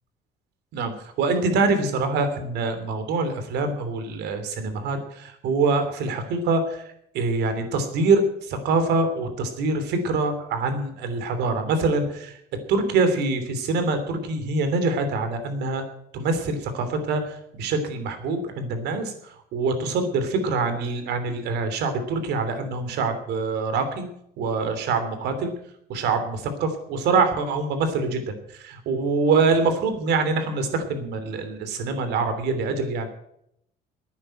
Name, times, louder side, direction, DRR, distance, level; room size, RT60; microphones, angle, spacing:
voice 1, 0.7-6.8 7.1-12.3 12.7-15.8 16.1-17.2 17.6-19.1 19.5-24.0 24.4-25.5 25.9-28.4 28.6-33.1, right 3 dB, 80° right, 8 dB, 3.1 m, -24 dB
12.0 x 9.6 x 9.1 m, 0.74 s
cardioid pair, 110°, 17 cm